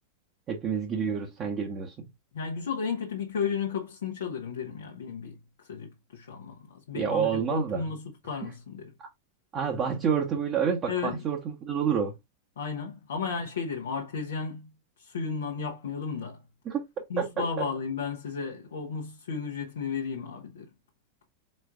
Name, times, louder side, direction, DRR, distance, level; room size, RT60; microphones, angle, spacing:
voice 1, 0.5-1.9 6.9-7.8 9.0-9.1 9.5-12.1 16.6-17.7, right 7 dB, 30° right, 1.0 m, -29 dB
voice 2, 2.3-8.9 10.9-11.3 12.6-14.7 15.0-16.4 17.1-20.7, left 5 dB, 65° left, 0.9 m, -34 dB
4.5 x 4.3 x 2.4 m
figure-of-eight pair, 90°, 0 cm